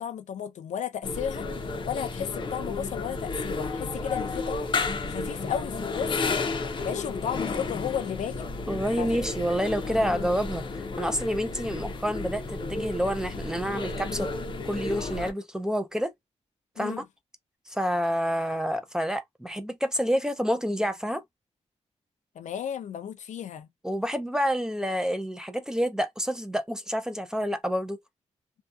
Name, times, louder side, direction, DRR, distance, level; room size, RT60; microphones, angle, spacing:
voice 1, 0.0-1.5 1.8-6.3 6.8-8.5 9.0-9.1 10.0-10.1 16.8-17.0 22.4-23.7, left 9 dB, 85° left, 0.5 m, -34 dB
sound 1, 1.0-15.3, left 3 dB, 40° left, 0.6 m, -32 dB
voice 2, 8.7-14.3 14.7-16.1 16.8-17.0 17.7-21.2 23.8-28.0, equal, 5° right, 0.4 m, -28 dB
2.7 x 2.3 x 2.3 m
wide cardioid pair, 140°, 12 cm